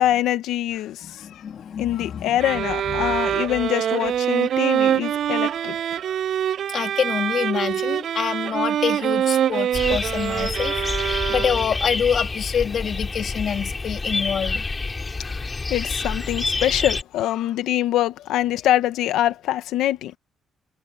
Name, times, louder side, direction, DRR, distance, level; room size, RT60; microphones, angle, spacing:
voice 1, 0.0-1.4 1.8-5.8 15.7-20.1, left 13 dB, 90° left, 1.6 m, -24 dB
voice 2, 1.0-2.6 2.9-3.4 6.7-14.6, left 7 dB, 55° left, 3.1 m, -27 dB
sound 1, 2.4-11.8, right 10 dB, 65° right, 0.3 m, -24 dB
sound 2, 9.7-17.0, left 3 dB, 25° left, 4.2 m, -28 dB
cardioid pair, 90°, 0 cm